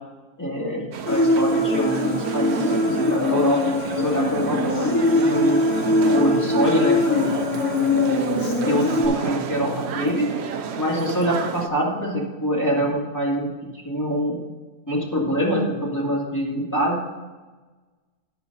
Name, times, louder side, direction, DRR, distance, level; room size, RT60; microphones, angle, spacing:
voice 1, 0.4-3.7 4.0-5.6 6.1-7.3 7.8-10.3 10.8-13.5 13.8-14.4 14.9-17.0, equal, 10° left, -6 dB, 2.3 m, -25 dB
sound 1, 0.9-11.7, right 7 dB, 60° right, 0.7 m, -31 dB
Human voice, 1.1-9.1, left 2 dB, 65° left, 1.5 m, -22 dB
11.0 x 5.0 x 5.4 m, 1.3 s
omnidirectional pair, 1.6 m